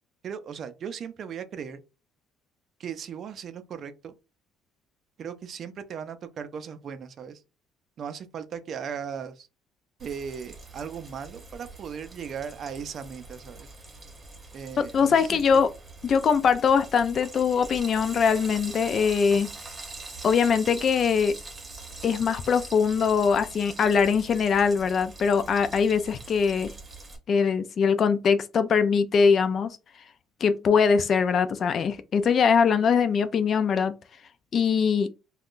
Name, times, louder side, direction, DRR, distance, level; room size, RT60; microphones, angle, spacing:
voice 1, 0.2-1.8 2.8-4.1 5.2-7.4 8.0-9.5 10.0-13.7 14.5-15.6, right 7 dB, 45° right, 0.4 m, -37 dB
Frying (food), 10.0-27.2, right 3 dB, 20° right, 0.9 m, -43 dB
voice 2, 14.8-15.7 16.0-19.5 20.2-21.4 22.0-26.7 27.3-29.8 30.4-33.9 34.5-35.1, left 6 dB, 45° left, 0.3 m, -22 dB
3.6 x 2.2 x 2.4 m
cardioid pair, 115°, 0 cm